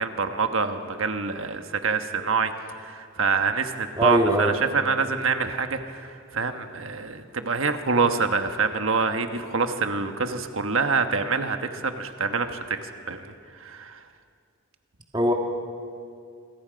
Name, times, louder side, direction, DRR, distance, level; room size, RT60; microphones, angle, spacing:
voice 1, 0.0-13.3 13.6-14.0, right 4 dB, 70° right, 7 dB, 1.3 m, -26 dB
voice 2, 4.0-4.5 15.1-15.3, right 1 dB, 20° right, 1 dB, 1.6 m, -21 dB
27.0 x 22.0 x 5.2 m, 2.4 s
head